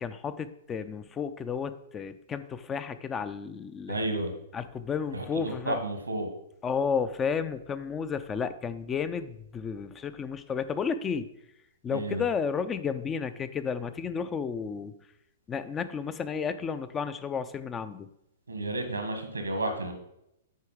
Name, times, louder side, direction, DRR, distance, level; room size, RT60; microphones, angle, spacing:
voice 1, 0.0-4.0 4.5-5.8 6.6-11.3 11.8-14.9 15.5-18.1, left 6 dB, 20° left, 12 dB, 0.5 m, -32 dB
voice 2, 3.9-4.3 5.1-6.3 11.9-12.2 18.5-19.9, right 2 dB, 90° right, 6 dB, 1.5 m, -32 dB
8.2 x 4.5 x 4.9 m, 0.81 s
figure-of-eight pair, 110°, 0 cm